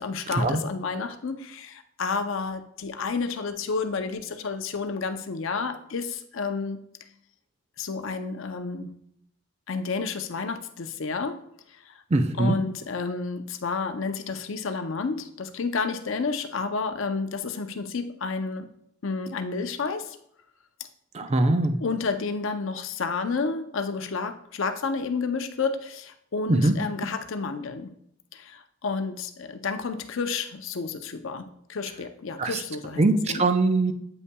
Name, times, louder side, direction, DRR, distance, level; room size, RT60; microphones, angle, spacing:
voice 1, 0.0-6.8 7.8-8.9 9.7-11.4 11.7-12.0 12.4-18.7 19.0-20.2 20.8-20.9 21.2-21.3 21.8-28.0 28.3-33.5, left 4 dB, 65° left, 8 dB, 0.6 m, -30 dB
voice 2, 12.1-12.6 21.1-21.8 26.5-26.7 32.4-32.5 33.0-33.9, right 2 dB, 30° right, 8 dB, 0.5 m, -21 dB
8.2 x 5.5 x 2.3 m, 0.73 s
head